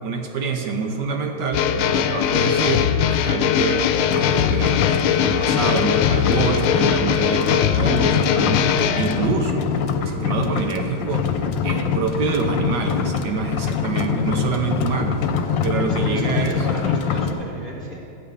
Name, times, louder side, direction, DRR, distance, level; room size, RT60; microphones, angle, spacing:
voice 1, 0.0-9.7 10.0-11.3 11.6-15.2 15.6-16.7, right 5 dB, 65° right, 4 dB, 1.3 m, -26 dB
sound 1, 1.5-9.3, left 8 dB, 85° left, 1.4 m, -20 dB
sound 2, 4.1-17.3, left 6 dB, 70° left, 1.3 m, -24 dB
voice 2, 15.6-18.0, left 1 dB, 40° left, -3 dB, 0.7 m, -35 dB
11.0 x 5.7 x 8.4 m, 2.7 s
omnidirectional pair, 2.3 m